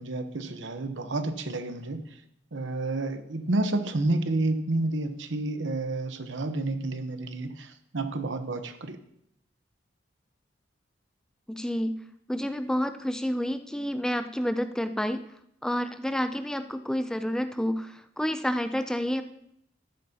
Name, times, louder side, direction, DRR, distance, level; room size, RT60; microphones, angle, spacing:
voice 1, 0.0-2.0 2.5-9.0, right 2 dB, 85° right, 9 dB, 0.9 m, -30 dB
voice 2, 11.5-12.0 12.3-15.2 15.6-19.2, equal, 5° left, 9 dB, 0.4 m, -29 dB
13.0 x 11.0 x 2.8 m, 0.74 s
head